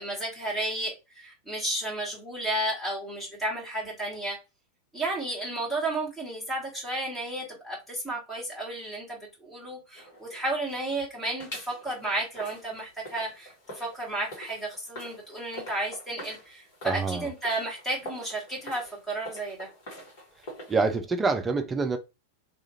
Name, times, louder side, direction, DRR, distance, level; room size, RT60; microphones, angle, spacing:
voice 1, 0.0-4.4 4.9-19.7, right 1 dB, 5° left, 1.2 m, -33 dB
sound 1, 9.9-11.0 11.4-21.0, equal, 50° left, 1.2 m, -45 dB
voice 2, 16.8-17.3 20.7-22.0, right 4 dB, 15° right, 0.4 m, -26 dB
2.4 x 2.4 x 2.9 m
figure-of-eight pair, 90°, 0 cm